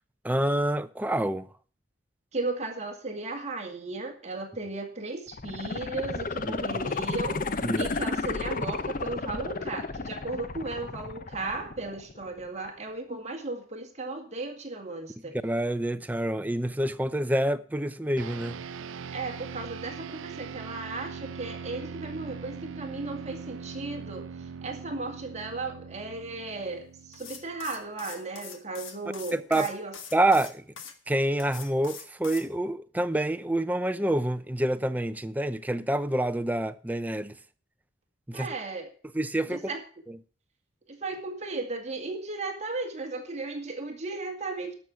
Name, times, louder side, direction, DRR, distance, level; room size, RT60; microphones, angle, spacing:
voice 1, 0.2-1.5 6.5-6.6 7.6-7.9 15.4-18.6 29.3-29.7 30.1-30.6 31.1-37.3 38.3-38.5 39.1-39.6, right 1 dB, 10° right, 0.5 m, -27 dB
voice 2, 2.3-7.4 7.7-15.4 19.1-29.9 38.3-38.9 39.5-39.8 40.9-44.7, right 3 dB, 35° right, 2.2 m, -35 dB
sound 1, 5.3-12.3 12.7-12.8, left 3 dB, 45° left, 0.7 m, -32 dB
sound 2, 18.2-27.8, right 6 dB, 90° right, 0.5 m, -41 dB
sound 3, 27.1-30.9 31.4-32.5, left 6 dB, 90° left, 1.7 m, -43 dB
12.5 x 6.2 x 7.0 m
head